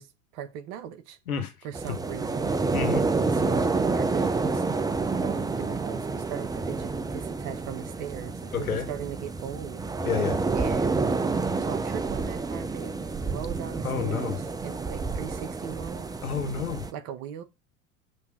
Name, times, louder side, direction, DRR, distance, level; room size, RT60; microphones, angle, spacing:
voice 1, 0.0-1.2 1.6-2.5 3.3-4.6 5.0-9.9 10.5-16.1 16.9-17.4, right 9 dB, 55° right, 1.5 m, -39 dB
sound 1, 1.7-16.9, right 3 dB, 10° right, 0.6 m, -29 dB
voice 2, 2.7-3.1 8.5-8.9 10.0-10.4 13.8-14.3 16.2-16.8, left 7 dB, 85° left, 1.4 m, -29 dB
7.6 x 3.6 x 5.8 m
hypercardioid pair, 85°, 42 cm